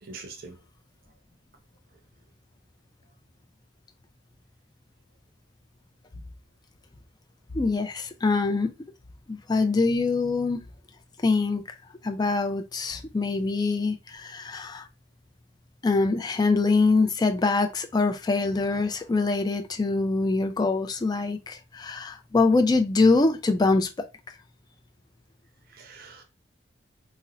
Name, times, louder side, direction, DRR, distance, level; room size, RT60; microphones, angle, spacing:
voice 1, 0.0-0.6 25.7-26.2, right 4 dB, 55° right, 0.6 m, -43 dB
voice 2, 7.5-8.7 9.3-10.6 11.2-11.8 12.0-14.9 15.8-23.9, left 3 dB, 25° left, 0.4 m, -24 dB
2.5 x 2.0 x 3.9 m
head